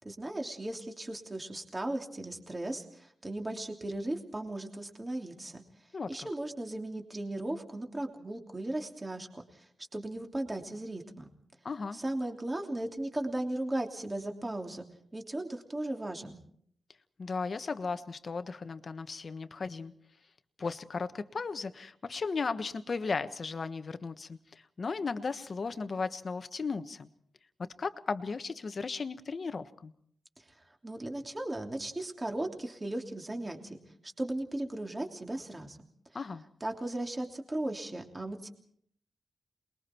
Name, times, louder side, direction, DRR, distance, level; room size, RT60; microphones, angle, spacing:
voice 1, 0.0-5.6 6.1-9.6 9.9-11.3 11.9-14.8 15.1-16.4 30.8-33.8 34.0-35.8 36.6-38.5, right 1 dB, 20° right, 3 dB, 3.1 m, -36 dB
voice 2, 11.6-12.0 17.2-19.9 20.6-24.4 24.8-27.1 27.8-29.9 36.1-36.4, left 4 dB, 45° left, 10 dB, 1.3 m, -35 dB
28.0 x 21.5 x 4.5 m, 0.64 s
wide cardioid pair, 100°, 0 cm